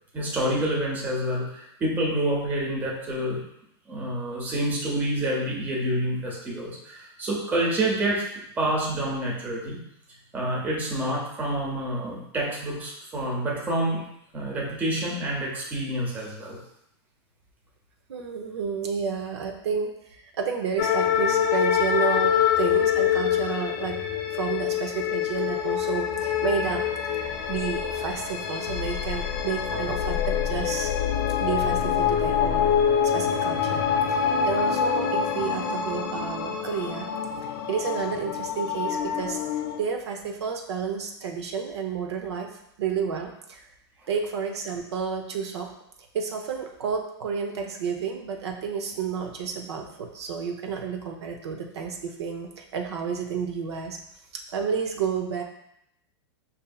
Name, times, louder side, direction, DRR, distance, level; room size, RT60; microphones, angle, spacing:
voice 1, 0.1-3.4 3.9-8.3 8.6-9.8 10.3-14.0 14.3-16.6, right 1 dB, 10° right, -3 dB, 0.7 m, -28 dB
voice 2, 18.1-24.0 24.3-26.9 27.1-30.9 31.4-32.8 33.1-37.1 37.7-39.4 39.8-42.5 42.8-43.7 44.1-45.7 46.1-54.0 54.5-55.4, right 6 dB, 85° right, 3 dB, 0.7 m, -31 dB
sound 1, 20.8-39.8, left 8 dB, 50° left, 0.4 m, -25 dB
5.3 x 2.7 x 2.3 m, 0.77 s
supercardioid pair, 160°, 14 cm